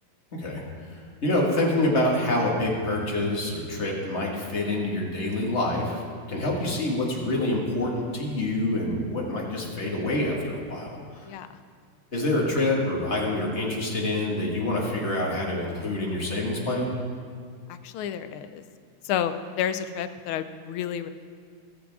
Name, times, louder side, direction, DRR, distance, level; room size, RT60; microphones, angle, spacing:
voice 1, 0.4-6.0 6.3-11.3 12.1-16.9, left 1 dB, 35° left, -2 dB, 1.9 m, -27 dB
voice 2, 17.7-18.6 19.0-21.1, left 9 dB, 80° left, 11 dB, 1.5 m, -30 dB
20.0 x 7.6 x 3.5 m, 2.1 s
omnidirectional pair, 2.3 m